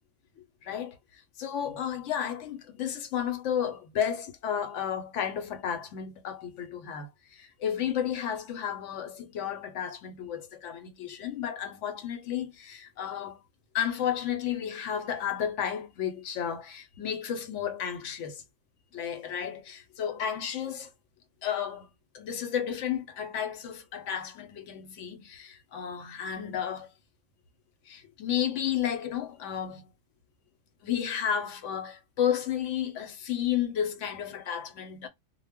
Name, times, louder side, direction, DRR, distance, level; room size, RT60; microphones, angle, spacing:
voice 1, 0.4-13.4 13.7-18.4 18.9-20.9 21.4-21.9 22.1-26.9 27.8-29.8 30.8-35.1, left 9 dB, 75° left, 1.0 m, -32 dB
2.2 x 2.0 x 3.4 m
omnidirectional pair, 1.3 m